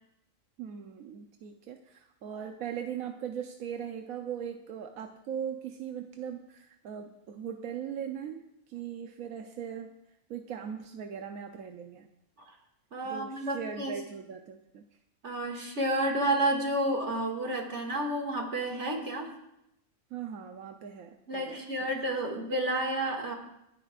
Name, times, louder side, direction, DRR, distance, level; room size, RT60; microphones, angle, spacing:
voice 1, 0.6-10.0 10.3-12.1 13.0-14.8 20.1-21.9, right 8 dB, 85° right, 4 dB, 1.2 m, -39 dB
voice 2, 12.9-13.9 15.2-19.3 21.3-23.3, right 1 dB, 55° right, 1 dB, 2.5 m, -30 dB
29.0 x 9.8 x 2.5 m, 0.83 s
omnidirectional pair, 1.4 m